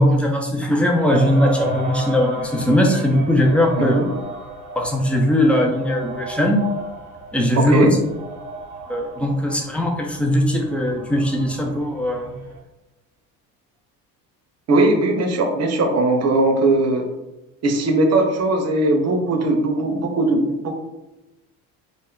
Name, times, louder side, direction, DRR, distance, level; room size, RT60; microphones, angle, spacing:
voice 1, 0.0-4.0 4.8-6.7 7.3-7.9 8.9-12.3, left 1 dB, 5° left, 1 dB, 0.3 m, -19 dB
sound 1, 1.0-12.6, right 1 dB, 85° right, 0.8 m, -34 dB
voice 2, 3.8-4.1 7.6-7.9 14.7-17.1 17.6-20.7, right 2 dB, 35° right, 3 dB, 0.7 m, -19 dB
2.3 x 2.0 x 3.6 m, 0.99 s
hypercardioid pair, 65°, 47 cm